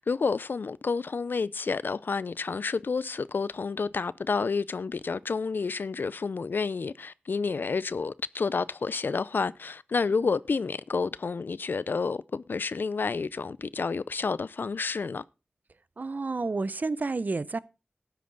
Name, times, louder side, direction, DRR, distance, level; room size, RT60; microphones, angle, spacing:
voice 1, 0.0-15.2, left 4 dB, 80° left, 0.5 m, -30 dB
voice 2, 16.0-17.6, right 3 dB, 55° right, 0.6 m, -30 dB
13.0 x 9.2 x 3.9 m
wide cardioid pair, 55°, 3 cm